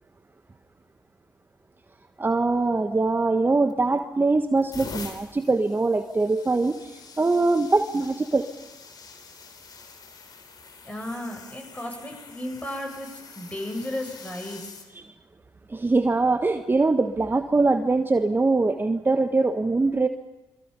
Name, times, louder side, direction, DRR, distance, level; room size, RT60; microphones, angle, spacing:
voice 1, 2.2-8.5 15.7-20.1, right 3 dB, 25° right, 7 dB, 1.4 m, -22 dB
sound 1, 3.7-4.1 4.6-14.9 15.7-16.0 17.5-17.7, left 4 dB, 55° left, 3.4 m, -45 dB
voice 2, 10.8-13.1 13.4-14.7, left 1 dB, 15° left, 2 dB, 8.0 m, -34 dB
28.0 x 23.5 x 5.5 m, 1.0 s
hypercardioid pair, 45°, 8 cm